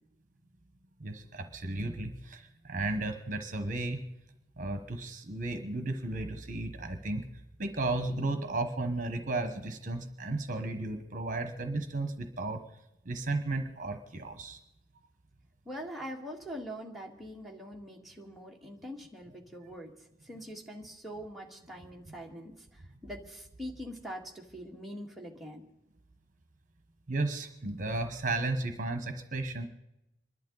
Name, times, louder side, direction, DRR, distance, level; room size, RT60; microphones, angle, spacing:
voice 1, 1.0-4.0 4.6-7.3 7.6-12.6 13.0-14.6 27.1-29.7, right 2 dB, 45° right, 7 dB, 1.2 m, -34 dB
voice 2, 15.7-19.9 20.2-25.6, equal, ahead, -2 dB, 1.8 m, -43 dB
26.0 x 11.5 x 4.0 m, 0.89 s
head